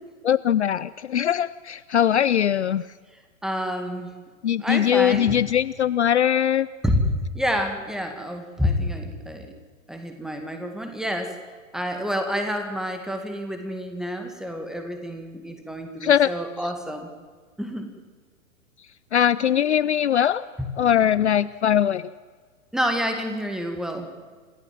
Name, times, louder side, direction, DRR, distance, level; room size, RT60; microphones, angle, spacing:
voice 1, 0.2-2.8 4.4-6.7 16.0-16.3 19.1-20.4 20.8-22.0, left 9 dB, 55° left, 17 dB, 0.6 m, -21 dB
voice 2, 3.4-4.1 4.6-5.4 6.8-9.5 9.9-11.4 11.7-17.1 17.6-17.9 20.6-20.7 22.7-24.1, equal, ahead, 5 dB, 2.0 m, -28 dB
27.5 x 14.5 x 7.5 m, 1.5 s
figure-of-eight pair, 115°, 41 cm